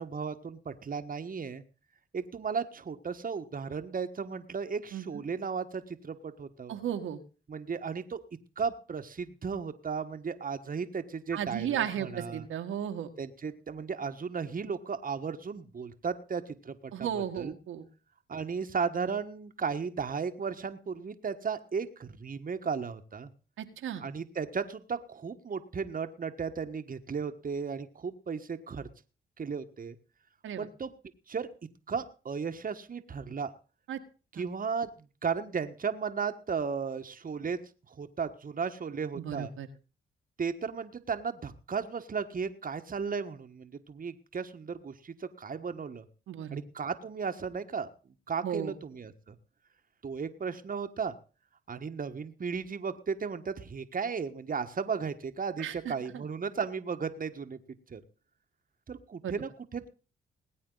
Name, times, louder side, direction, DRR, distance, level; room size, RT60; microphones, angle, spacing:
voice 1, 0.0-1.6 2.1-6.8 7.5-8.2 8.6-12.5 13.2-17.6 18.3-23.3 24.0-28.9 29.4-30.0 30.6-30.9 31.3-31.5 31.9-33.5 34.3-34.9 35.2-37.6 38.0-39.5 40.4-46.0 46.5-47.9 48.3-49.3 50.0-51.1 51.7-57.6 57.9-58.0 58.9-59.9, right 5 dB, 40° right, 8 dB, 1.5 m, -35 dB
voice 2, 4.9-5.2 6.7-7.2 11.3-13.1 16.9-17.8 23.6-24.0 30.4-30.7 33.9-34.0 34.4-34.5 39.1-39.7 46.3-46.6 48.4-48.7 55.6-55.9 59.2-59.3, right 9 dB, 75° right, 6 dB, 1.6 m, -34 dB
20.0 x 8.6 x 4.0 m, 0.35 s
supercardioid pair, 50°, 21 cm